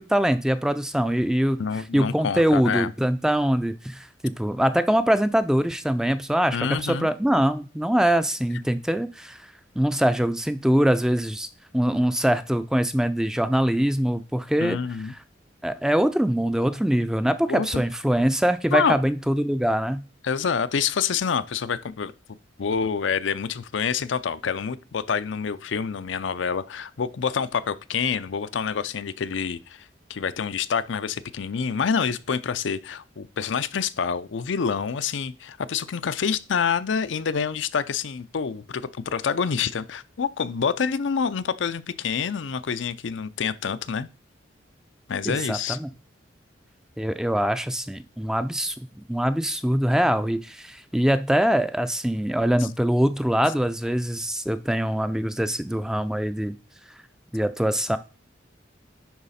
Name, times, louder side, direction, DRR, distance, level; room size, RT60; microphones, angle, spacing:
voice 1, 0.0-1.6 1.9-9.5 9.8-11.5 11.7-14.8 15.6-20.0 45.2-45.9 47.0-56.6 57.3-58.0, equal, 5° right, 0.4 m, -23 dB
voice 2, 1.6-2.9 6.5-7.1 14.6-15.1 17.4-17.8 18.7-19.0 20.2-22.1 22.6-44.1 45.1-45.8, left 6 dB, 85° left, 0.5 m, -27 dB
10.5 x 4.0 x 4.2 m
head